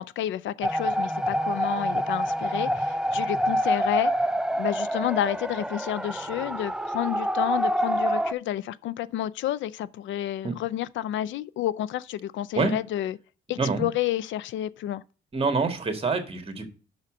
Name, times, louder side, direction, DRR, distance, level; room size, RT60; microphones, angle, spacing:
voice 1, 0.0-4.1 4.6-13.2 13.5-15.0, left 12 dB, 75° left, 0.4 m, -30 dB
sound 1, 0.6-8.3, equal, 5° right, 0.3 m, -27 dB
voice 2, 13.6-13.9 15.3-16.7, right 4 dB, 30° right, 1.7 m, -26 dB
6.3 x 4.2 x 6.0 m
cardioid pair, 90°, 20 cm